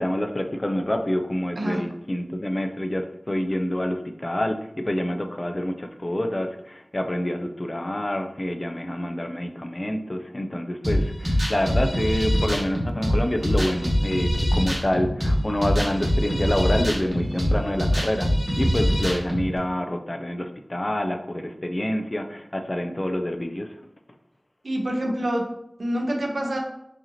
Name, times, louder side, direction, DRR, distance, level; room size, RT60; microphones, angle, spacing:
voice 1, 0.0-23.8, left 1 dB, 35° left, 6 dB, 0.4 m, -27 dB
sound 1, 10.8-19.4, equal, 30° right, 1.5 m, -23 dB
voice 2, 24.6-25.5 25.8-26.6, right 1 dB, 70° right, 1 dB, 0.8 m, -26 dB
4.9 x 2.8 x 2.8 m, 0.78 s
wide cardioid pair, 60°, 0 cm